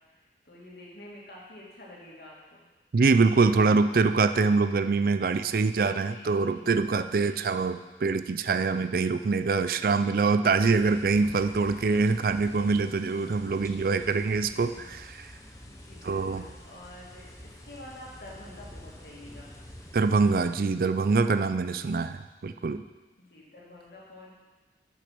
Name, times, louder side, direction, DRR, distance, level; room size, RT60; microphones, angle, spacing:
voice 1, 0.1-2.6 5.2-6.7 7.1-7.5 8.7-8.9 11.6-12.2 13.7-15.0 15.6-19.5 21.7-21.9 23.3-24.3, left 1 dB, 60° left, -4 dB, 2.4 m, -49 dB
voice 2, 2.9-15.3 16.0-16.4 19.9-22.8, right 4 dB, 55° right, 11 dB, 0.4 m, -24 dB
sound 1, 10.6-20.6, left 1 dB, 20° left, 0.9 m, -48 dB
8.6 x 6.3 x 6.0 m, 1.2 s
head